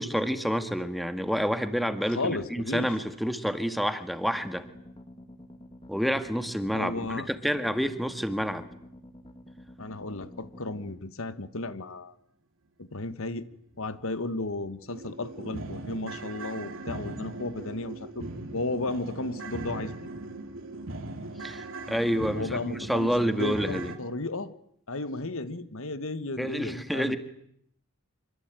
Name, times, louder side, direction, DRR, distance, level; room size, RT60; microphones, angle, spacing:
voice 1, 0.0-4.7 5.9-8.6 21.4-23.9 26.4-27.2, equal, ahead, 9 dB, 1.8 m, -28 dB
voice 2, 2.1-2.9 6.7-7.3 9.8-12.1 12.8-13.5 13.8-18.3 18.5-20.0 22.3-24.5 24.9-27.2, left 2 dB, 65° left, 13 dB, 1.4 m, -34 dB
sound 1, 4.2-11.0, left 1 dB, 25° left, 2.0 m, -49 dB
sound 2, 14.0-14.1 14.5-14.6 14.9-24.0, right 2 dB, 60° right, 3.1 m, -39 dB
26.0 x 24.5 x 9.1 m, 0.71 s
head